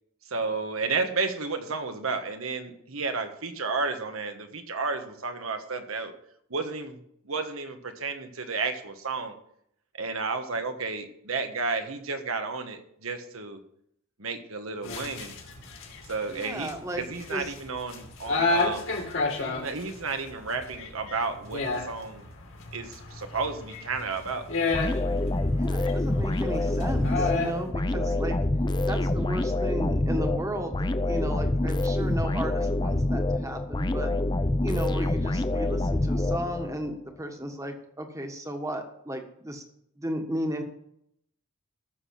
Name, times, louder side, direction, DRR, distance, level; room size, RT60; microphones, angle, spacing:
voice 1, 0.3-6.1 6.5-7.0 7.2-9.4 10.0-13.6 14.2-15.4 16.1-18.9 19.4-22.3 22.7-24.5, right 4 dB, 90° right, 7 dB, 1.5 m, -32 dB
sound 1, 14.8-27.6, left 3 dB, 70° left, 2.7 m, -32 dB
voice 2, 16.3-17.0 17.3-17.5 25.5-28.4 28.9-34.1 34.6-39.6 40.0-40.6, right 1 dB, 15° right, 5 dB, 1.4 m, -34 dB
sound 2, 24.7-36.9, left 1 dB, 20° left, 0.5 m, -26 dB
14.0 x 6.6 x 5.9 m, 0.72 s
head